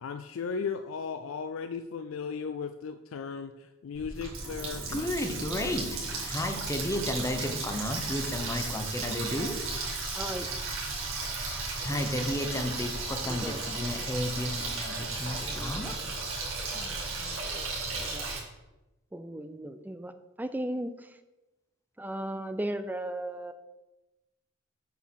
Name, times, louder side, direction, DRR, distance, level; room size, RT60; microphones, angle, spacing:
voice 1, 0.0-5.1, left 5 dB, 75° left, 8 dB, 0.4 m, -36 dB
Water tap faucet, 3.9-18.4, right 3 dB, 70° right, 2.0 m, -35 dB
voice 2, 4.9-5.9 6.3-9.6 11.8-15.9, left 1 dB, 15° left, 4 dB, 0.8 m, -32 dB
voice 3, 10.1-10.5 13.2-13.7 15.4-16.3 16.7-17.4 18.0-18.2 19.1-20.1 20.4-21.1 22.0-23.5, right 1 dB, 10° right, 10 dB, 0.4 m, -37 dB
6.9 x 4.6 x 6.2 m, 1.0 s
head